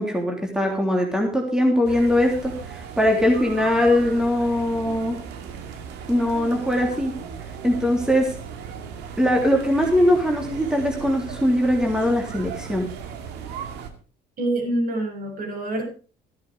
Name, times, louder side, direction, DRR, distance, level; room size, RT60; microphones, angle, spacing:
voice 1, 0.0-5.2 6.1-7.1 7.6-8.3 9.2-12.9, left 1 dB, 5° right, 1 dB, 3.3 m, -21 dB
sound 1, 1.8-13.9, right 6 dB, 90° right, 2.2 m, -36 dB
voice 2, 14.4-15.9, right 1 dB, 60° right, 1 dB, 7.5 m, -26 dB
14.0 x 11.0 x 5.0 m, 0.37 s
cardioid pair, 110°, 17 cm